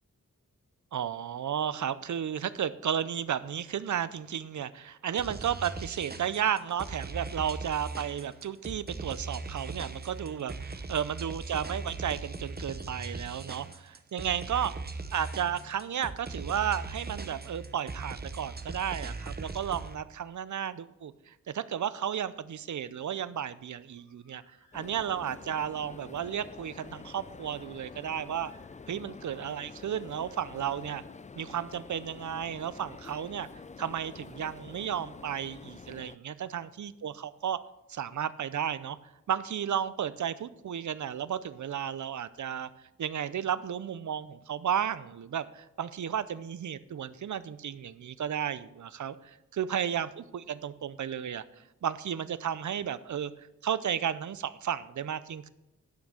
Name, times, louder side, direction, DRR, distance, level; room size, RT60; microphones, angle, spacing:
voice 1, 0.9-14.7 15.1-24.4 24.7-28.5 28.9-31.0 31.4-33.5 33.8-37.6 37.9-39.0 39.3-42.7 43.0-53.3 53.6-55.5, right 9 dB, 60° right, 16 dB, 0.6 m, -33 dB
sound 1, 5.2-20.0, right 3 dB, 30° right, 0.9 m, -39 dB
Bird, 14.8-16.0 18.1-20.1 23.6-25.4 27.4-29.3, left 3 dB, 85° left, 4.6 m, -65 dB
sound 2, 24.7-36.2, left 4 dB, 25° left, 0.3 m, -48 dB
11.5 x 6.0 x 6.6 m, 0.92 s
wide cardioid pair, 70°, 33 cm